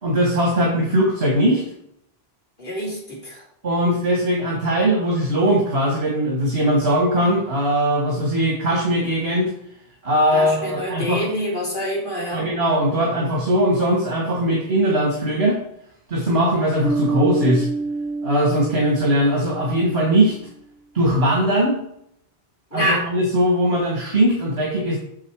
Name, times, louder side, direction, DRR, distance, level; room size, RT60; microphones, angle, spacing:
voice 1, 0.0-1.6 3.6-9.5 10.0-11.2 12.3-15.6 16.1-17.7 18.2-20.3 20.9-21.8 22.7-25.0, right 1 dB, 70° right, -2 dB, 2.2 m, -20 dB
voice 2, 2.6-3.4 10.3-12.5 22.7-23.1, equal, 55° left, -5 dB, 3.7 m, -26 dB
Bass guitar, 16.8-20.3, right 3 dB, 5° right, 2.8 m, -27 dB
7.4 x 6.9 x 4.8 m, 0.72 s
omnidirectional pair, 1.1 m